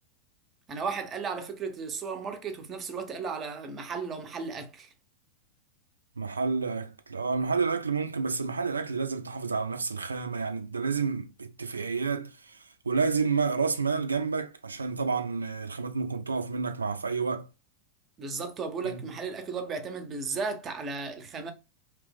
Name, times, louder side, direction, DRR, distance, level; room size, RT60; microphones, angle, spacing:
voice 1, 0.7-4.9 18.2-21.5, right 4 dB, 25° right, 0.5 m, -35 dB
voice 2, 6.2-12.6 12.9-17.5 18.8-19.0, right 5 dB, 75° right, 0.3 m, -30 dB
2.9 x 2.0 x 3.3 m
figure-of-eight pair, 90°, 0 cm